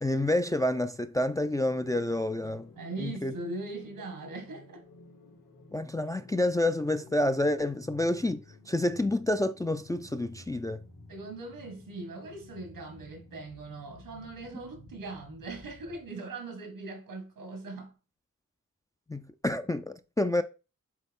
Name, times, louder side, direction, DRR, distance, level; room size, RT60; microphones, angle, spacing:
voice 1, 0.0-2.7 3.0-3.3 5.7-8.4 8.7-10.8 19.1-20.4, left 1 dB, 10° left, 0.3 m, -28 dB
sound 1, 1.1-16.1, left 2 dB, 80° left, 2.1 m, -53 dB
voice 2, 2.8-4.8 11.1-17.9, right 3 dB, 90° right, 1.9 m, -40 dB
7.3 x 3.6 x 3.6 m
cardioid pair, 70°, 33 cm